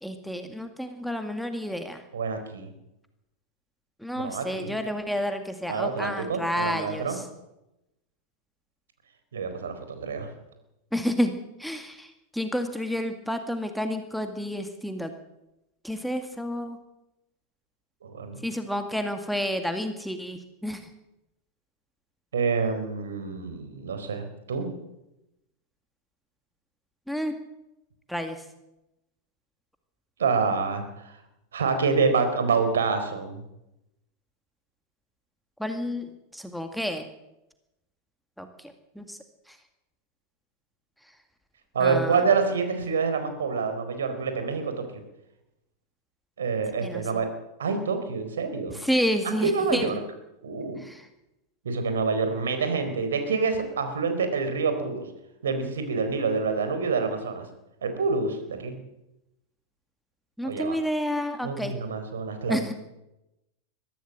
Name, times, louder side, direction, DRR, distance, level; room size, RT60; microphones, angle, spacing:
voice 1, 0.0-2.0 4.0-7.0 10.9-11.3 11.6-12.1 12.3-15.1 15.8-16.8 18.4-20.8 27.1-27.3 28.1-28.4 35.6-36.0 36.3-37.1 38.4-38.5 39.0-39.2 41.8-42.2 46.8-47.0 48.8-49.9 50.8-51.0 60.4-61.7 62.5-62.7, equal, ahead, 7 dB, 2.1 m, -30 dB
voice 2, 2.1-2.7 4.2-4.8 5.7-7.2 9.3-10.3 18.0-18.4 22.3-24.7 30.2-31.2 31.5-33.4 41.7-44.7 46.4-47.3 47.6-48.8 49.2-50.0 50.4-50.8 51.6-55.0 55.4-57.4 57.8-58.8 60.4-60.8 61.4-62.7, right 5 dB, 65° right, 8 dB, 4.2 m, -27 dB
22.5 x 15.0 x 7.6 m, 0.92 s
figure-of-eight pair, 90°, 0 cm